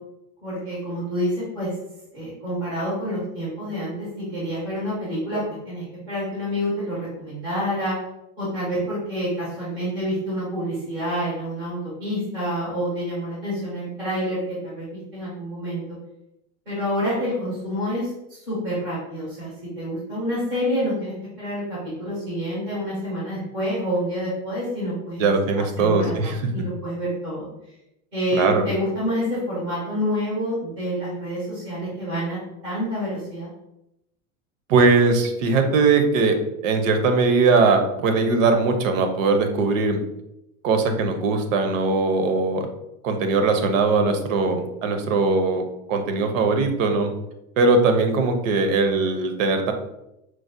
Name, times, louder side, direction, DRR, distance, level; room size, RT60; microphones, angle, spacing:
voice 1, 0.4-1.7 2.1-8.0 8.4-14.9 15.1-15.8 16.7-19.5 19.8-25.3 25.8-27.5 28.1-33.5, equal, 5° right, -8 dB, 0.3 m, -28 dB
voice 2, 25.2-26.5 28.3-28.6 34.7-36.4 36.6-40.0 40.6-42.7 43.0-45.6 45.9-47.1 47.6-49.7, right 3 dB, 65° right, 6 dB, 0.6 m, -20 dB
4.6 x 2.0 x 2.5 m, 0.86 s
supercardioid pair, 175°, 43 cm